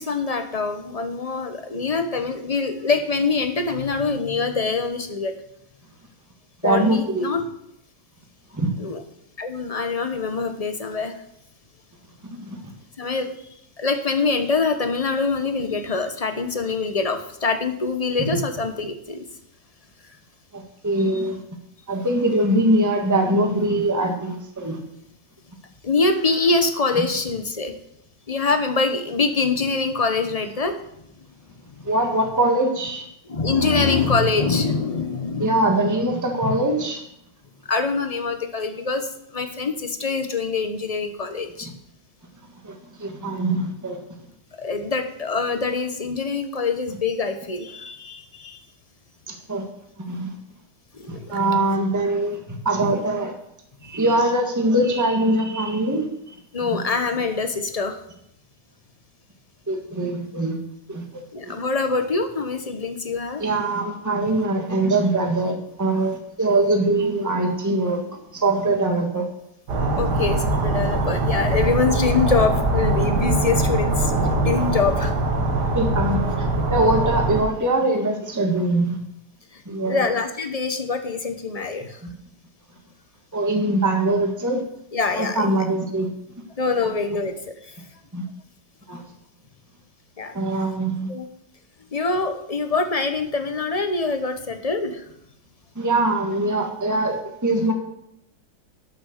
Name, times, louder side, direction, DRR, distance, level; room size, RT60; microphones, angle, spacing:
voice 1, 0.0-5.3 6.6-7.4 8.8-9.0 9.4-11.1 13.0-13.3 13.8-19.2 25.8-27.7 28.3-30.8 31.8-31.9 33.2-35.6 37.7-41.7 44.6-48.6 50.9-51.2 56.5-58.0 61.3-63.4 69.9-75.1 79.5-82.0 84.9-85.6 86.6-87.3 90.2-90.4 91.1-91.2 91.9-95.0, left 4 dB, 25° left, 7 dB, 0.9 m, -24 dB
voice 2, 6.6-7.4 8.5-8.7 12.2-12.6 20.5-21.4 21.9-24.8 31.8-33.0 35.4-37.0 42.6-44.0 49.3-49.7 50.0-50.4 51.1-52.4 52.6-53.3 53.8-56.8 59.7-60.6 60.9-61.0 61.4-61.6 63.4-68.0 68.3-69.3 75.7-76.3 76.7-79.0 79.6-80.0 82.0-82.1 83.3-84.6 85.2-86.1 86.8-86.9 88.1-88.2 88.9-89.0 90.3-91.1 95.7-97.7, right 2 dB, 10° right, 3 dB, 1.5 m, -22 dB
sound 1, 69.7-77.4, right 2 dB, 70° right, 2.2 m, -22 dB
12.0 x 6.9 x 6.6 m, 0.77 s
omnidirectional pair, 1.9 m